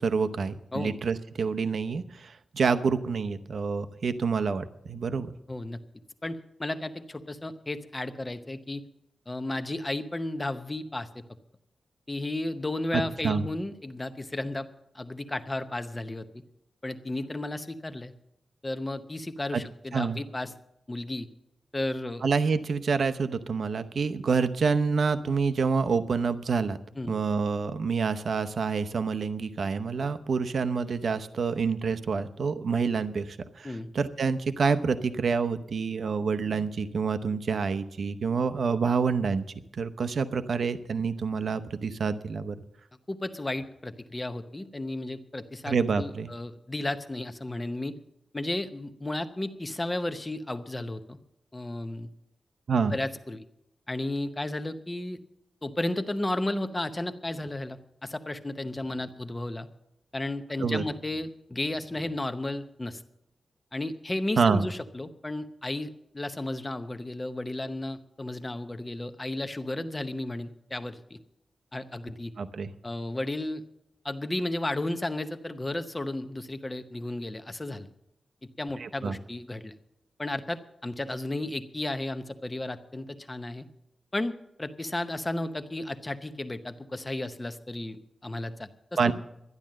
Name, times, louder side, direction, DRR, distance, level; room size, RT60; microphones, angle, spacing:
voice 1, 0.0-5.3 13.2-13.5 19.5-19.6 19.9-20.2 22.2-26.8 27.1-39.5 39.7-42.6 45.7-46.3 52.7-52.9 60.6-60.8 64.4-64.7 72.4-72.7 78.8-79.2 89.0-89.1, right 5 dB, 60° right, 10 dB, 0.7 m, -27 dB
voice 2, 5.5-5.8 6.2-8.8 9.3-11.1 12.1-14.7 14.9-16.4 16.8-18.1 18.6-20.5 20.9-21.3 21.7-22.2 27.0-27.2 33.6-33.9 43.1-48.0 48.3-51.2 51.5-52.1 52.9-53.4 53.9-55.2 55.6-59.7 60.1-63.0 63.7-71.2 71.7-72.3 72.8-73.6 74.0-77.9 78.6-79.7 80.2-83.7 84.1-88.7 89.0-89.1, left 1 dB, 20° left, 9 dB, 0.8 m, -33 dB
12.0 x 10.5 x 7.5 m, 0.81 s
wide cardioid pair, 125°, 0 cm